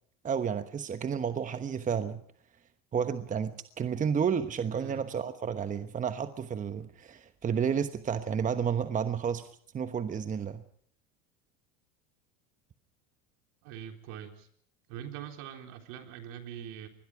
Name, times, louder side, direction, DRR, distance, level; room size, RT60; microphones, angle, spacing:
voice 1, 0.2-2.2 2.9-9.4 9.7-10.6, right 7 dB, 25° right, 1.2 m, -31 dB
voice 2, 4.7-5.0 13.6-14.5 14.9-16.9, right 9 dB, 65° right, 4.0 m, -43 dB
25.5 x 21.0 x 4.9 m
supercardioid pair, 110°, 31 cm